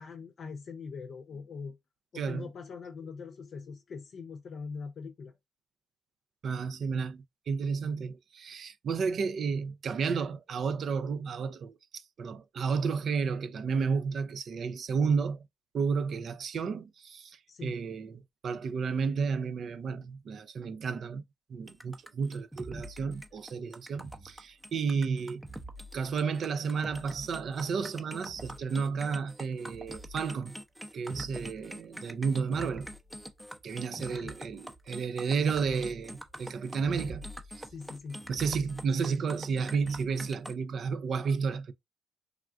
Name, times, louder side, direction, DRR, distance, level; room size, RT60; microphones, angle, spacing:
voice 1, 0.0-1.8 2.1-5.3 17.5-17.8 34.1-34.3 37.6-38.2, left 5 dB, 55° left, 0.6 m, -42 dB
voice 2, 2.1-2.5 6.4-15.4 15.7-21.2 21.5-25.4 25.9-30.5 30.9-32.9 33.6-37.3 37.5-37.6 38.3-41.7, right 5 dB, 55° right, 0.4 m, -32 dB
sound 1, 21.7-40.5, right 1 dB, 5° right, 0.6 m, -44 dB
3.4 x 2.4 x 2.3 m
cardioid pair, 90°, 0 cm